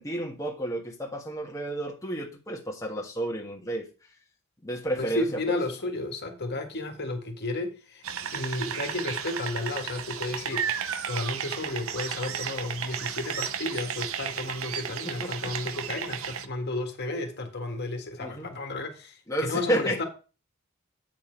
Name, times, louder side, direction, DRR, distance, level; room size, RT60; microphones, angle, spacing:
voice 1, 0.0-3.9 4.6-5.2 15.0-15.5 18.2-18.5 19.3-20.0, right 1 dB, 15° left, 1.5 m, -31 dB
voice 2, 5.0-8.0 8.3-10.7 11.1-20.0, left 2 dB, 50° left, 1.7 m, -33 dB
sound 1, 8.0-16.5, right 8 dB, 70° right, 0.8 m, -33 dB
8.9 x 6.0 x 4.5 m
head